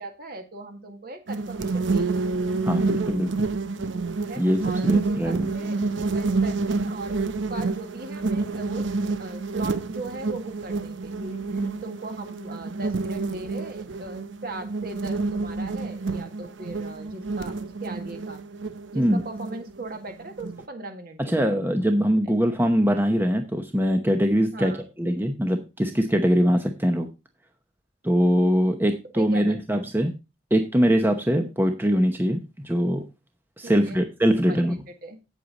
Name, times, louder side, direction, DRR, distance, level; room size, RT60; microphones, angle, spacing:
voice 1, 0.0-2.5 4.2-5.8 6.0-8.9 9.2-18.4 18.9-21.5 22.2-22.3 24.5-24.9 29.1-29.8 33.6-34.1 34.4-35.2, right 2 dB, 50° right, 5 dB, 1.9 m, -39 dB
sound 1, 1.3-20.6, right 3 dB, 75° right, 0.7 m, -28 dB
voice 2, 2.6-3.3 4.4-5.5 18.9-19.2 21.2-24.7 25.0-27.1 28.0-30.1 30.5-33.0 33.6-34.8, equal, 10° right, 5 dB, 0.8 m, -22 dB
8.6 x 8.3 x 3.9 m, 0.27 s
head